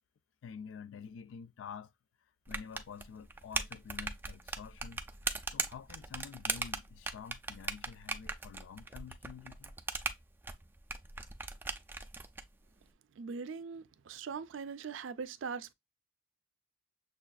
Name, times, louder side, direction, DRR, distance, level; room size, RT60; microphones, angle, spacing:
voice 1, 0.4-1.9 2.5-5.0 5.5-9.8, left 7 dB, 80° left, 0.3 m, -48 dB
sound 1, 2.5-12.4, right 3 dB, 10° right, 0.3 m, -39 dB
voice 2, 13.1-15.7, right 5 dB, 80° right, 0.4 m, -41 dB
6.6 x 2.4 x 2.2 m
head